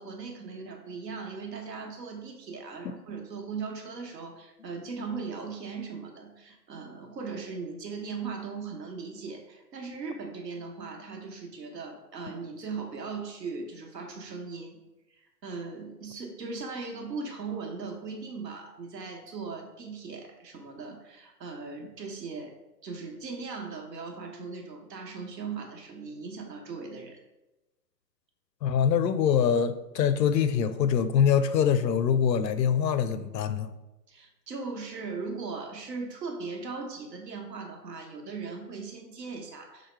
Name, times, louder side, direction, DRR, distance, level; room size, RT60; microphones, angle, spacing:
voice 1, 0.0-14.8 15.4-22.5 22.8-27.2 34.1-39.9, right 4 dB, 75° right, 2 dB, 1.1 m, -38 dB
voice 2, 28.6-33.7, left 7 dB, 80° left, 11 dB, 0.6 m, -24 dB
4.9 x 2.1 x 4.3 m, 0.99 s
hypercardioid pair, 150°, 50 cm